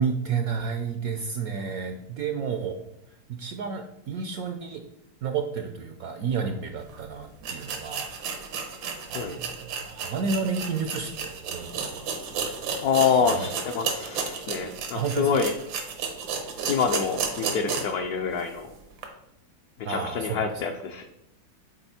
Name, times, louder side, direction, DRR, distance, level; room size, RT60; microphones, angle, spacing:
voice 1, 0.0-2.8 3.3-4.8 5.2-8.1 9.1-12.1 12.4-12.6 13.0-13.5 14.9-15.3 19.8-20.5, right 5 dB, 70° right, 6 dB, 0.9 m, -31 dB
sound 1, 6.9-7.0 7.4-18.0 18.4-18.5 19.0-19.1, right 5 dB, 85° right, 1.8 m, -33 dB
voice 2, 12.8-15.5 16.7-18.7 19.9-21.0, left 6 dB, 70° left, 2 dB, 1.0 m, -26 dB
7.9 x 4.2 x 4.2 m, 0.83 s
omnidirectional pair, 2.0 m